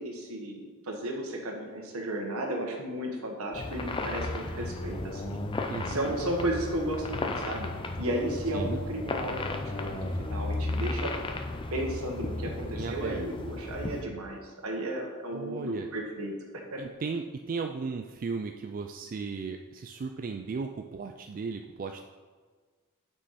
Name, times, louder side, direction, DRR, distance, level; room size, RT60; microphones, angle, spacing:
voice 1, 0.0-5.4 5.8-7.7 8.0-11.1 11.7-16.8, right 1 dB, 70° right, 1 dB, 1.4 m, -34 dB
sound 1, 3.5-14.0, left 2 dB, 25° left, 0.5 m, -34 dB
voice 2, 5.7-6.2 8.5-8.8 12.8-13.5 15.3-15.9 16.8-22.0, right 4 dB, 40° right, 5 dB, 0.3 m, -36 dB
8.0 x 5.5 x 4.2 m, 1.5 s
head